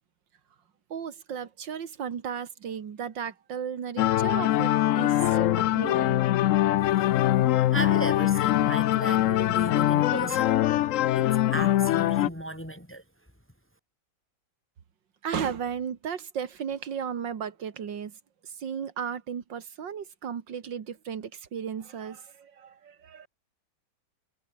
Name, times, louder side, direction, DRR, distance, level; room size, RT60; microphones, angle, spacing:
voice 1, 0.9-6.2 15.2-18.2 18.4-23.3, right 7 dB, 85° right, 2.4 m, -35 dB
sound 1, 4.0-12.3, left 14 dB, 80° left, 0.7 m, -23 dB
voice 2, 7.7-10.6 11.2-13.0, right 1 dB, 5° left, 2.1 m, -35 dB
omnidirectional pair, 1.9 m